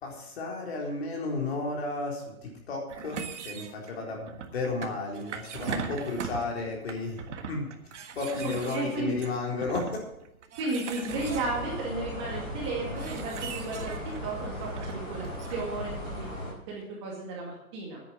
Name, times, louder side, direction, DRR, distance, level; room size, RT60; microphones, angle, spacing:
voice 1, 0.0-7.2 7.5-7.7 8.1-9.9, left 3 dB, 45° left, 0 dB, 4.1 m, -33 dB
sound 1, 2.9-15.5, right 6 dB, 55° right, 1.6 m, -40 dB
voice 2, 8.4-9.2 10.5-18.0, right 2 dB, 20° right, -2 dB, 2.2 m, -34 dB
sound 2, 11.1-16.5, equal, 10° left, 2.9 m, -37 dB
10.0 x 10.0 x 7.5 m, 0.81 s
hypercardioid pair, 175°, 43 cm